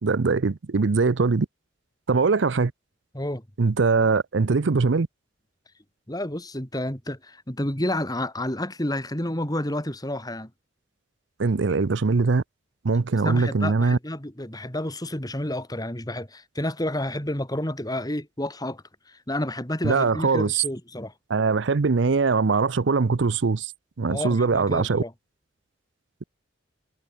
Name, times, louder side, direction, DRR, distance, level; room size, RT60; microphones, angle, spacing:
voice 1, 0.0-1.5 2.1-2.7 3.6-5.1 11.4-12.4 12.8-14.0 19.8-20.6 21.3-23.7 24.0-25.0, right 4 dB, 65° right, 0.6 m, -22 dB
voice 2, 6.1-10.5 13.2-21.1 24.1-25.1, left 1 dB, 20° left, 2.9 m, -30 dB
head